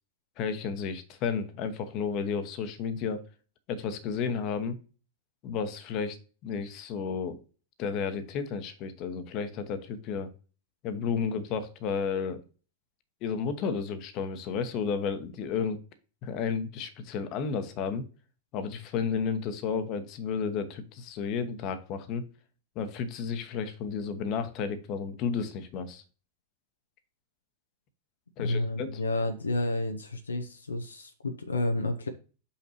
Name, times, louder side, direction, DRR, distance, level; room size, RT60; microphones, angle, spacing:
voice 1, 0.4-3.2 3.7-4.8 5.4-6.2 6.4-7.4 7.8-10.3 10.8-12.4 13.2-15.8 16.2-18.0 18.5-22.2 22.8-26.0 28.4-29.0, left 6 dB, 40° left, 1.0 m, -32 dB
voice 2, 28.4-32.1, left 2 dB, 75° left, 0.6 m, -30 dB
6.3 x 5.7 x 3.0 m
figure-of-eight pair, 90°, 0 cm